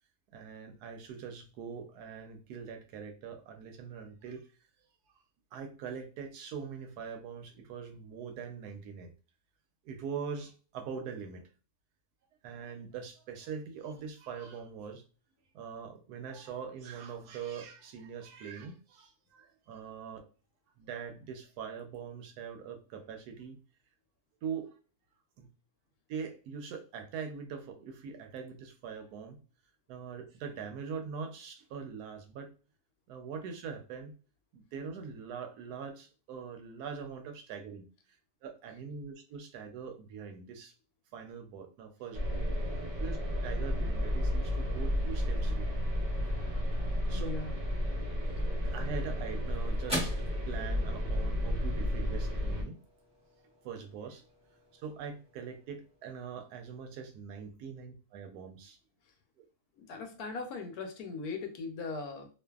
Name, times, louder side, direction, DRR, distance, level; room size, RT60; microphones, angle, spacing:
voice 1, 0.3-4.5 5.5-9.1 9.8-11.5 12.4-15.0 15.5-20.3 20.8-23.6 24.4-24.7 25.4-25.5 26.1-29.4 29.9-32.5 33.1-34.2 34.5-37.8 38.4-40.7 41.1-42.4 43.0-43.2 43.4-45.8 47.1-47.3 48.6-50.2 50.5-52.8 53.6-54.2 54.7-58.8, right 6 dB, 80° right, 6 dB, 1.1 m, -42 dB
sound 1, 42.1-52.6, equal, 50° right, 0.7 m, -32 dB
voice 2, 47.1-47.5 59.8-62.3, left 4 dB, 75° left, 5 dB, 1.1 m, -39 dB
sound 2, 48.6-57.2, right 1 dB, 5° right, 0.6 m, -45 dB
2.5 x 2.5 x 2.3 m, 0.36 s
omnidirectional pair, 1.6 m